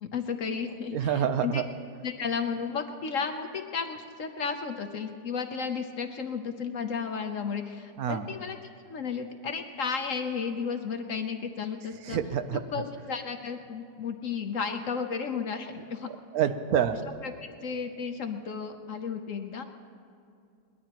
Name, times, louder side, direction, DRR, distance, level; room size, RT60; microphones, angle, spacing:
voice 1, 0.0-1.6 2.0-8.6 8.9-12.2 12.5-16.1 17.2-17.3 17.6-19.6, left 6 dB, 60° left, 6 dB, 1.0 m, -33 dB
voice 2, 0.9-1.7 8.0-8.3 12.0-12.6 16.3-17.0, right 9 dB, 65° right, 10 dB, 1.1 m, -27 dB
22.0 x 19.5 x 3.0 m, 2.5 s
omnidirectional pair, 1.9 m